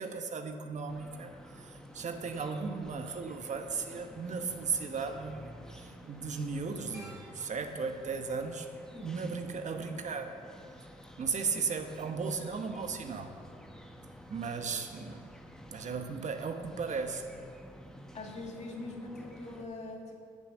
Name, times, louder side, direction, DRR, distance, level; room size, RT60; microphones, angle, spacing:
voice 1, 0.0-8.7 9.0-10.3 11.2-13.3 14.3-15.3 15.7-17.2, right 5 dB, 55° right, 6 dB, 1.1 m, -36 dB
sound 1, 0.9-19.7, equal, 5° left, 1.1 m, -51 dB
sound 2, 6.0-9.9 10.2-10.4, equal, 20° right, 3.2 m, -57 dB
voice 2, 8.9-9.3 11.5-11.6 18.1-20.2, left 2 dB, 50° left, 0 dB, 2.4 m, -43 dB
8.9 x 8.4 x 7.6 m, 2.3 s
cardioid pair, 70°, 15 cm